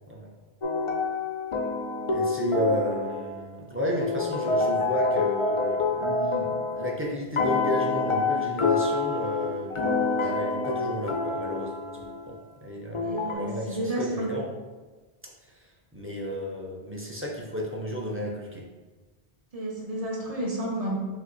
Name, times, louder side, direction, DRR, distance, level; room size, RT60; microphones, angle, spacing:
sound 1, 0.6-3.6 4.0-7.0 7.4-12.3 12.9-13.3, left 3 dB, 45° left, 0.4 m, -27 dB
voice 1, 2.1-14.5 15.4-18.6, left 1 dB, 15° right, -3 dB, 0.4 m, -32 dB
voice 2, 13.0-14.3 19.5-21.0, right 1 dB, 35° right, -3 dB, 1.0 m, -31 dB
6.1 x 2.8 x 2.6 m, 1.3 s
omnidirectional pair, 1.1 m